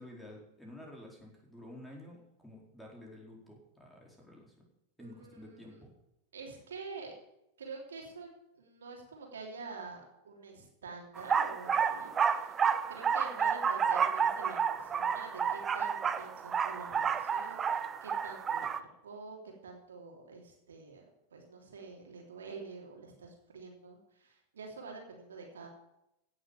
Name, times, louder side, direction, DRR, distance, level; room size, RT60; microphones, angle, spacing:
voice 1, 0.0-4.5 5.0-5.9, left 1 dB, 5° left, -2 dB, 4.4 m, -51 dB
voice 2, 5.0-5.8 6.3-7.1 7.6-8.3 8.5-25.7, right 4 dB, 65° right, 0 dB, 3.3 m, -47 dB
sound 1, 11.2-18.8, right 7 dB, 20° right, 0.8 m, -30 dB
16.5 x 7.7 x 6.9 m, 0.86 s
figure-of-eight pair, 90°, 0 cm